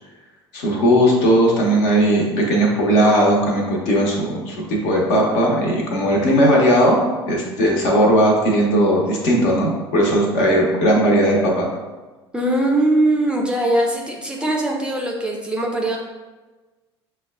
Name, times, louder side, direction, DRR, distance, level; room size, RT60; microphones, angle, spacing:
voice 1, 0.5-7.0 7.3-11.7, equal, 55° left, -2 dB, 0.9 m, -17 dB
voice 2, 12.3-16.0, right 1 dB, 5° right, -1 dB, 0.5 m, -20 dB
6.0 x 2.2 x 2.3 m, 1.2 s
figure-of-eight pair, 65°, 14 cm